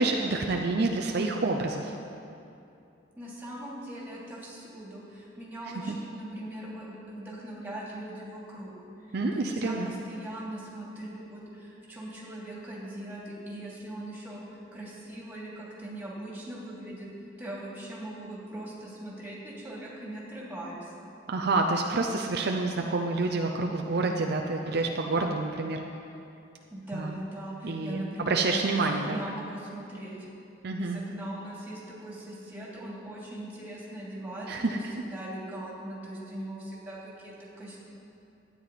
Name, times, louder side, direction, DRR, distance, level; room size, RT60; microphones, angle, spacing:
voice 1, 0.0-1.9 5.9-6.0 9.1-9.9 21.3-25.8 26.9-27.2 27.6-29.2 30.6-31.0 34.5-34.9, right 3 dB, 65° right, 2 dB, 0.6 m, -28 dB
voice 2, 3.2-8.7 9.1-14.4 14.7-17.1 17.4-20.9 26.7-30.2 30.8-37.8, right 1 dB, 10° right, -6 dB, 2.8 m, -40 dB
12.5 x 9.6 x 4.1 m, 2.7 s
head